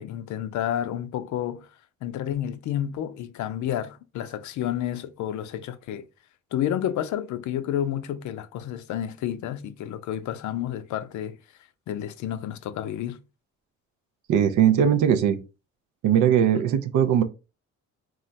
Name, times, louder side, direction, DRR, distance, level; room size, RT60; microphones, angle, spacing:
voice 1, 0.0-6.1 6.5-13.2, left 11 dB, 70° left, 0.5 m, -30 dB
voice 2, 14.3-15.4 16.0-17.2, right 9 dB, 75° right, 0.5 m, -20 dB
2.4 x 2.1 x 3.9 m
cardioid pair, 90°, 30 cm